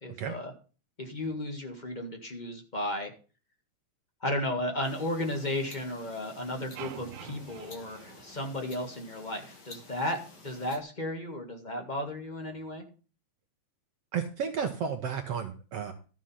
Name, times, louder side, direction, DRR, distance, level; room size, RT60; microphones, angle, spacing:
voice 1, 0.0-0.5 1.0-3.1 4.2-12.8, left 1 dB, 20° left, 3 dB, 1.4 m, -34 dB
sound 1, 4.8-10.8, left 3 dB, 40° left, 2.2 m, -52 dB
sound 2, 6.7-9.0, right 12 dB, 85° right, 2.2 m, -46 dB
voice 2, 14.1-15.9, right 7 dB, 65° right, 5 dB, 1.9 m, -32 dB
13.0 x 6.5 x 5.6 m, 0.36 s
omnidirectional pair, 3.3 m